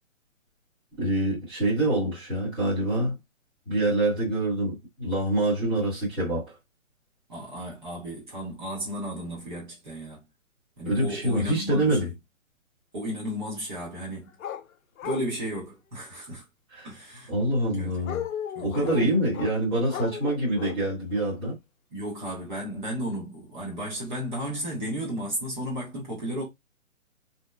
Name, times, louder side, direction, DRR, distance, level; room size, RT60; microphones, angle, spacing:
voice 1, 1.0-3.1 3.7-6.6 10.8-12.1 16.7-16.9 17.3-18.2 18.6-21.6, right 1 dB, 10° right, 1.0 m, -25 dB
voice 2, 7.3-10.3 10.8-12.1 12.9-14.3 15.0-16.5 16.8-17.3 17.7-18.2 18.5-19.1 21.9-26.4, equal, 35° right, 1.1 m, -34 dB
sound 1, 14.4-14.6 15.0-15.3 18.0-19.5 19.9-20.8 21.2-21.3, left 9 dB, 80° left, 0.5 m, -35 dB
2.8 x 2.1 x 2.2 m
hypercardioid pair, 165°, 41 cm